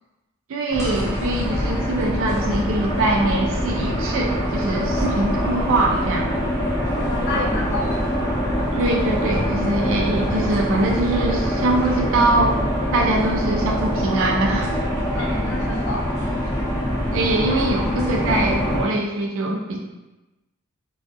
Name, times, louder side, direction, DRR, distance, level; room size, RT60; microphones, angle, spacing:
voice 1, 0.5-6.3 7.3-7.5 8.7-12.6 12.9-14.7 15.2-15.4 17.1-19.8, right 2 dB, 60° right, -1 dB, 0.4 m, -23 dB
sound 1, 0.7-18.8, equal, 15° left, 0.6 m, -24 dB
voice 2, 7.0-8.0 15.1-16.0, left 2 dB, 50° left, 1 dB, 0.3 m, -28 dB
2.3 x 2.3 x 2.5 m, 1.0 s
head